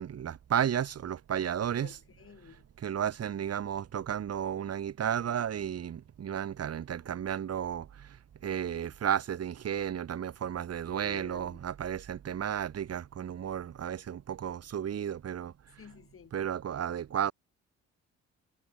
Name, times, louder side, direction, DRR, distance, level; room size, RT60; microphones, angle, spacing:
voice 1, 0.0-2.0 2.8-15.5 16.3-17.3, right 9 dB, 55° right, 2.0 m, -33 dB
voice 2, 1.8-2.6 10.9-11.6 15.8-16.4, left 7 dB, 45° left, 3.6 m, -51 dB
cardioid pair, 90°, 30 cm